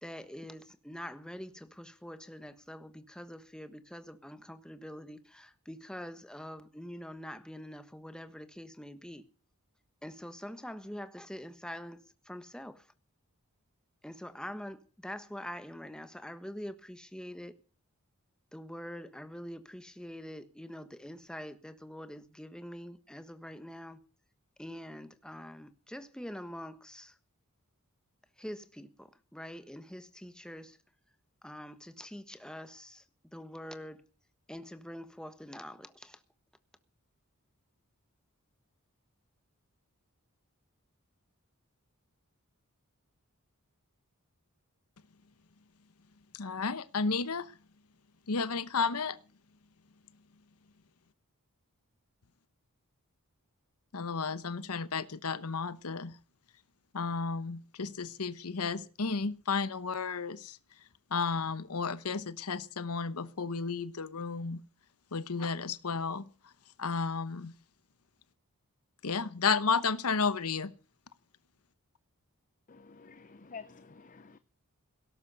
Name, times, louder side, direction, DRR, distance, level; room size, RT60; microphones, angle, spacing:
voice 1, 0.0-9.3 10.0-12.9 14.0-17.5 18.5-24.0 24.6-27.2 28.4-30.8 31.4-34.0 34.5-36.2, equal, 5° left, 1.3 m, -45 dB
voice 2, 46.3-47.5 48.3-49.2 53.9-56.1 56.9-60.6 61.1-64.6 65.1-66.2 66.8-67.5 69.0-70.7, left 5 dB, 80° left, 1.0 m, -32 dB
voice 3, 72.7-74.4, left 5 dB, 35° left, 0.7 m, -49 dB
17.5 x 12.0 x 6.8 m
head